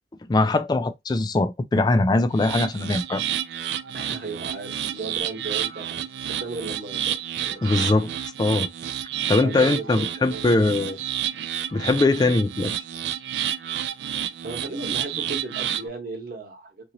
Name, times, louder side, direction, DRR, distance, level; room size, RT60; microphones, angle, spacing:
voice 1, 0.3-3.2 7.6-8.1 8.4-8.7 9.3-11.0 11.7-12.7, left 2 dB, 25° left, 0.3 m, -21 dB
sound 1, 2.3-15.9, right 10 dB, 75° right, 0.3 m, -30 dB
voice 2, 3.9-7.1 7.4-7.8 9.4-10.4 10.8-10.9 14.4-16.9, right 3 dB, 55° right, 1.1 m, -35 dB
2.8 x 2.6 x 2.8 m
head